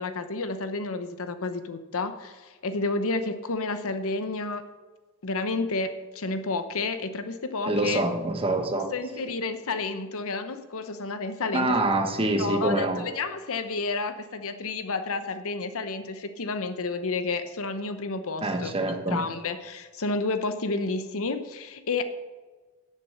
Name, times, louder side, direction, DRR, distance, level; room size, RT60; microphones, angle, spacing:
voice 1, 0.0-4.6 5.2-8.0 8.9-11.8 12.2-22.0, left 3 dB, 65° left, 9 dB, 0.9 m, -31 dB
voice 2, 7.7-8.9 11.5-13.0 18.4-19.2, right 2 dB, 25° right, 5 dB, 1.2 m, -25 dB
10.0 x 7.5 x 6.7 m, 1.3 s
head